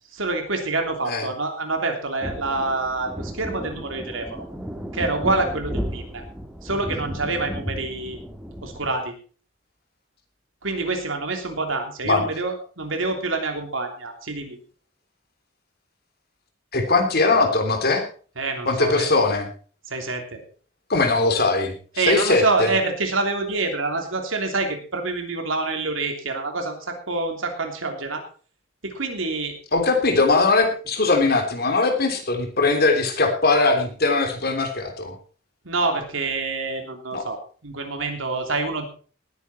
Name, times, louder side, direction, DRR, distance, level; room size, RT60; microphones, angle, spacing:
voice 1, 0.1-4.4 4.9-6.2 6.6-8.2 8.6-9.1 10.6-14.6 18.4-19.1 19.9-20.4 22.0-28.2 28.8-29.6 35.6-38.9, right 3 dB, 85° right, 4 dB, 3.2 m, -26 dB
sound 1, 2.2-9.0, equal, 5° right, 1.7 m, -33 dB
voice 2, 16.7-18.0 18.7-19.5 20.9-22.7 29.7-35.1 37.1-37.2, left 3 dB, 50° left, 4 dB, 3.2 m, -20 dB
19.0 x 9.5 x 4.4 m, 0.41 s
head